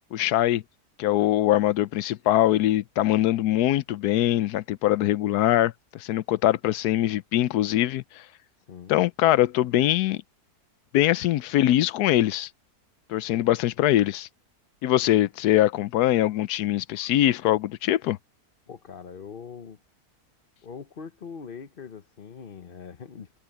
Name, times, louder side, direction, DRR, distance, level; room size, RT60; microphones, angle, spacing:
voice 1, 0.1-0.6 1.0-8.0 8.9-10.2 10.9-12.5 13.1-14.3 14.8-18.2, left 14 dB, 90° left, 1.2 m, -22 dB
voice 2, 18.7-19.8 20.6-23.3, left 6 dB, 40° left, 0.9 m, -42 dB
omnidirectional pair, 1.6 m